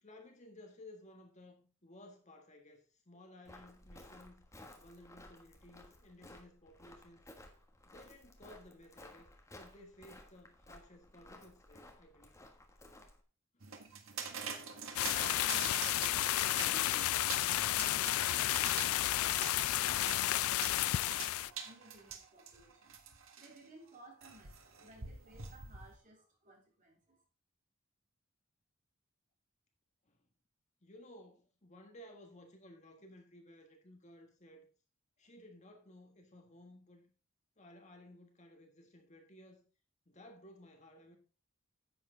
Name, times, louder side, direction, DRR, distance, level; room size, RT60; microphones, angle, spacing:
voice 1, 0.0-4.4 4.8-7.2 7.8-12.3 13.5-13.7 30.0-30.2 30.8-34.7 35.2-37.1 37.6-39.7 40.0-41.2, left 1 dB, 35° left, 1.6 m, -57 dB
Walk footsteps, 3.4-13.2, left 1 dB, 15° left, 1.4 m, -57 dB
sound 1, 13.6-23.6 24.2-25.9, right 6 dB, 75° right, 1.6 m, -46 dB
sound 2, 15.0-21.5, left 14 dB, 85° left, 0.3 m, -32 dB
voice 2, 15.3-27.2, right 2 dB, 40° right, 3.4 m, -59 dB
10.0 x 7.8 x 3.8 m
head